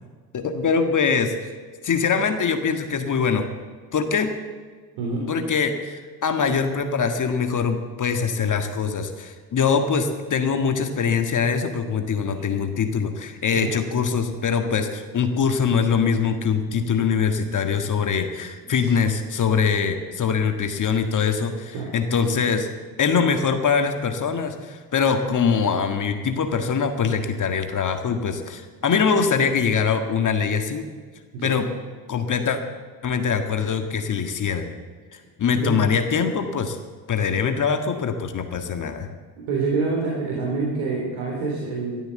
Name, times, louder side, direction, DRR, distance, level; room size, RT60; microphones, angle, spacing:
voice 1, 0.3-1.3 1.8-3.4 3.9-4.3 5.3-22.7 23.0-30.8 31.4-31.7 32.1-32.6 33.0-34.7 35.1-36.8 37.1-39.1, left 6 dB, 40° left, 6 dB, 1.8 m, -23 dB
voice 2, 5.0-5.3 12.2-12.4 13.5-13.7 18.8-18.9 21.7-21.9 31.3-31.5 35.5-35.8 39.4-42.0, right 4 dB, 70° right, -2 dB, 3.7 m, -27 dB
13.0 x 12.5 x 7.7 m, 1.5 s
hypercardioid pair, 60°, 47 cm